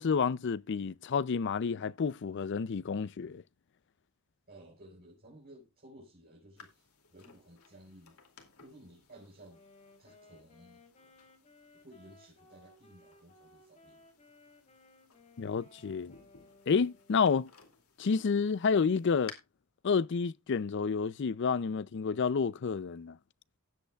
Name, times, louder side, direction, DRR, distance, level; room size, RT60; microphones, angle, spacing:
voice 1, 0.0-3.4 15.4-16.1 16.7-17.5 18.0-19.3 19.8-23.2, left 5 dB, 55° left, 0.4 m, -30 dB
voice 2, 4.5-8.2 8.6-9.6 10.0-10.8 11.8-14.0, right 1 dB, 45° right, 4.5 m, -56 dB
sound 1, 6.6-19.3, left 7 dB, 85° left, 2.5 m, -58 dB
Wind instrument woodwind instrument, 9.5-17.5, left 2 dB, 30° left, 3.3 m, -61 dB
18.0 x 8.1 x 2.3 m
head